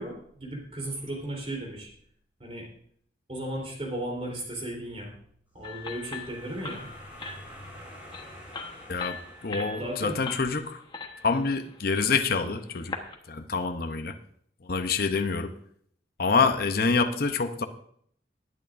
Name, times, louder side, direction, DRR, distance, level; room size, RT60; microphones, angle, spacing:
voice 1, 0.0-1.9 2.4-2.7 3.3-5.1 5.5-6.9 9.8-10.2, right 1 dB, 35° right, -1 dB, 3.5 m, -35 dB
sound 1, 5.6-13.2, left 3 dB, 25° left, 1.1 m, -41 dB
sound 2, 5.6-10.4, equal, 10° right, 4.3 m, -48 dB
voice 2, 8.9-10.8 11.2-12.9 13.3-14.1 14.6-15.5 16.2-17.6, left 4 dB, 55° left, 7 dB, 0.7 m, -26 dB
19.0 x 9.3 x 2.6 m, 0.64 s
head